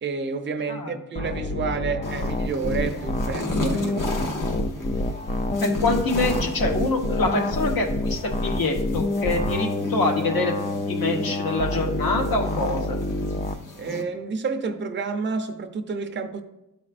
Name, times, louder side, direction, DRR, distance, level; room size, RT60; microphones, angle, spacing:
voice 1, 0.0-4.4 13.8-16.4, right 4 dB, 35° right, 0.5 m, -30 dB
sound 1, 1.1-13.5, left 2 dB, 25° left, 0.3 m, -27 dB
sound 2, 2.0-14.0, left 2 dB, 60° left, 1.1 m, -36 dB
voice 2, 5.6-10.5 10.9-13.0, left 2 dB, 80° left, 1.3 m, -25 dB
12.5 x 4.2 x 2.5 m
wide cardioid pair, 150°, 35 cm